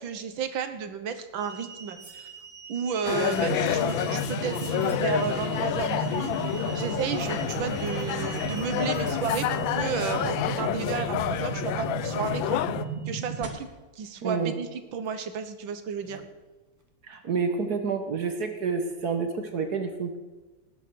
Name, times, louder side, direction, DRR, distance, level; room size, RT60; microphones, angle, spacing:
voice 1, 0.0-2.3 2.7-6.3 6.7-12.6 13.1-13.7 14.0-16.2, right 6 dB, 75° right, 9 dB, 1.8 m, -32 dB
sound 1, 1.4-13.3 14.1-14.2 15.1-15.2 16.0-16.2 18.9-19.0, right 5 dB, 10° right, 1.4 m, -46 dB
sound 2, 3.1-12.9, left 11 dB, 80° left, 1.4 m, -29 dB
sound 3, 3.5-13.5, right 5 dB, 40° right, 2.0 m, -34 dB
voice 2, 14.2-14.5 17.0-20.2, right 5 dB, 55° right, 6 dB, 1.5 m, -29 dB
18.5 x 9.0 x 6.2 m, 1.2 s
omnidirectional pair, 2.2 m